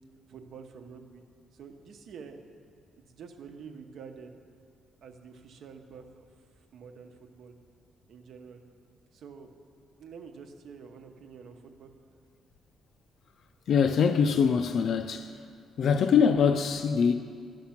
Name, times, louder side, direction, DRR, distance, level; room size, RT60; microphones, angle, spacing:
voice 1, 0.3-1.2 1.5-2.4 3.1-4.4 5.0-6.2 6.7-7.5 8.1-8.6 9.1-9.5 10.0-11.9, right 6 dB, 70° right, 0.9 m, -47 dB
voice 2, 13.7-15.3 15.8-17.1, left 6 dB, 65° left, 0.4 m, -23 dB
10.5 x 5.9 x 5.9 m
cardioid pair, 90°, 0 cm